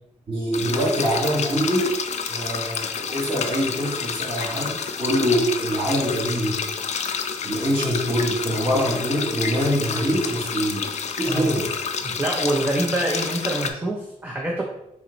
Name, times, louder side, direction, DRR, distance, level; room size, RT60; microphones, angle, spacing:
voice 1, 0.3-1.9 2.3-6.6 7.4-10.9 11.2-11.7, equal, 40° right, -5 dB, 1.6 m, -24 dB
sound 1, 0.5-13.7, left 6 dB, 60° left, 0.4 m, -29 dB
voice 2, 12.0-14.6, right 1 dB, 10° right, -1 dB, 0.5 m, -25 dB
5.6 x 2.1 x 3.9 m, 0.83 s
wide cardioid pair, 140°, 13 cm